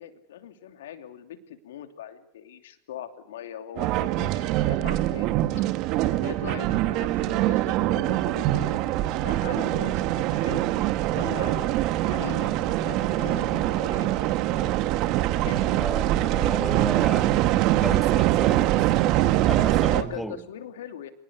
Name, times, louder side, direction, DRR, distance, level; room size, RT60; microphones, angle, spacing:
voice 1, 0.0-5.7 6.2-10.7 11.1-14.8 15.5-15.6 19.9-21.1, left 10 dB, 80° left, 8 dB, 2.9 m, -40 dB
sound 1, 3.8-20.0, right 15 dB, 55° right, 1.8 m, -24 dB
voice 2, 15.5-17.5 17.8-20.4, right 1 dB, ahead, 8 dB, 2.8 m, -35 dB
27.5 x 20.0 x 8.2 m, 0.78 s
hypercardioid pair, 90°, 0 cm